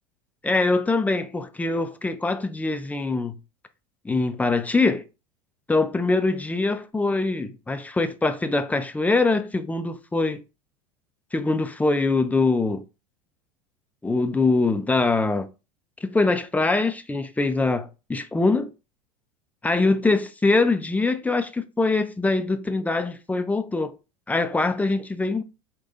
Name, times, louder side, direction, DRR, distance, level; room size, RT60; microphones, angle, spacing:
voice 1, 0.4-3.4 4.0-5.0 5.7-10.4 11.3-12.8 14.0-15.5 16.0-18.7 19.6-23.9 24.3-25.4, left 3 dB, 10° left, 0.5 m, -23 dB
4.8 x 2.2 x 3.9 m
hypercardioid pair, 85°, 19 cm